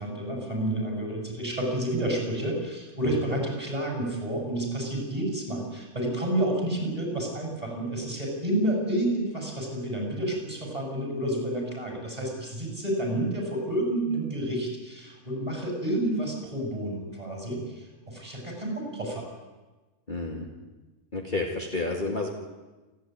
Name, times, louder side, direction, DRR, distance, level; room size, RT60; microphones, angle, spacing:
voice 1, 0.0-19.3, right 1 dB, 25° right, 0 dB, 7.7 m, -30 dB
voice 2, 20.1-20.5 21.1-22.3, left 2 dB, 30° left, 0 dB, 2.2 m, -30 dB
29.0 x 12.0 x 9.5 m, 1.2 s
omnidirectional pair, 1.6 m